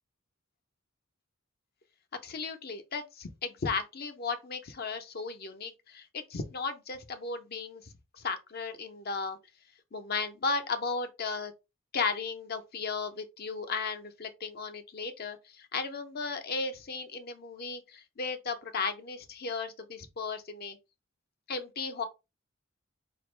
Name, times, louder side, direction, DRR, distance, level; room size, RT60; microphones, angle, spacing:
voice 1, 2.2-9.4 9.9-11.5 11.9-20.8 21.5-22.0, left 4 dB, 45° left, 0.6 m, -35 dB
4.3 x 2.5 x 3.2 m
head